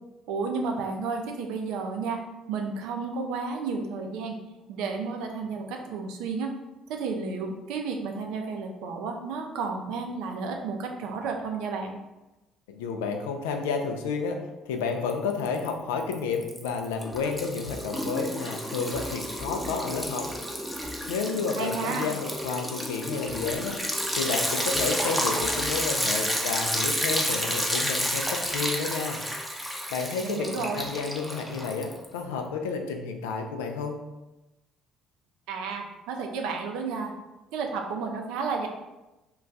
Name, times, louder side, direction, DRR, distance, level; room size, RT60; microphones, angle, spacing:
voice 1, 0.3-2.2 2.5-4.4 4.7-6.5 6.9-12.0 21.6-22.1 30.2-30.9 35.5-37.1 37.5-38.7, right 4 dB, 75° right, 3 dB, 0.4 m, -32 dB
voice 2, 12.7-14.4 14.7-20.3 21.1-23.8 24.2-29.2 29.9-34.0, left 5 dB, 80° left, 3 dB, 0.3 m, -31 dB
Liquid, 15.1-15.7 16.0-32.2, equal, ahead, 0.6 m, -30 dB
2.3 x 2.2 x 3.8 m, 1.0 s
hypercardioid pair, 55°, 0 cm